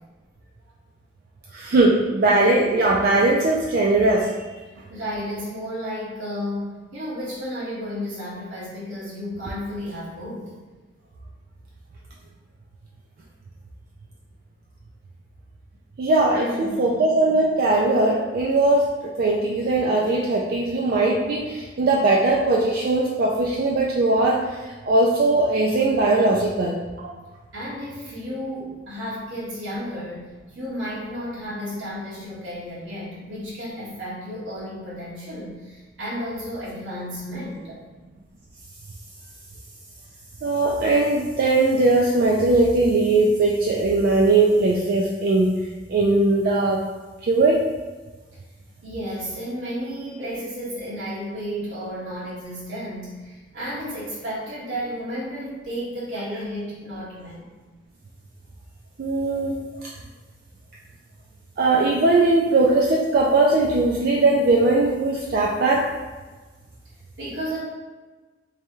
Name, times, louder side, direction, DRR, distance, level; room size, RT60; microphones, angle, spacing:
voice 1, 1.5-4.3 16.0-26.8 27.0-27.1 40.4-45.5 45.9-46.8 47.2-47.7 59.0-59.9 61.6-65.9, right 2 dB, 50° right, -2 dB, 0.3 m, -20 dB
voice 2, 4.9-10.5 16.3-16.9 27.5-37.8 48.8-57.5 61.5-61.6 67.2-67.6, equal, 90° right, -9 dB, 1.4 m, -32 dB
3.3 x 3.3 x 3.0 m, 1.3 s
head